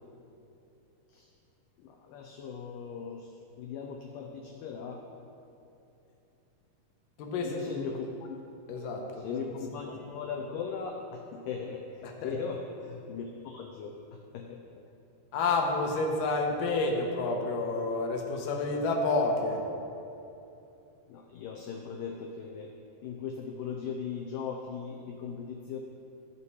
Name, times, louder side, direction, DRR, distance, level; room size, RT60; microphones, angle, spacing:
voice 1, 1.8-3.3 3.6-5.0 7.4-8.4 9.2-13.9 14.3-14.6 21.1-22.7 23.0-25.8, left 6 dB, 90° left, 2 dB, 1.9 m, -38 dB
voice 2, 7.2-7.9 8.7-10.0 12.0-12.3 15.3-19.6, left 3 dB, 70° left, 1 dB, 2.3 m, -30 dB
14.5 x 5.7 x 4.7 m, 2.8 s
omnidirectional pair, 4.7 m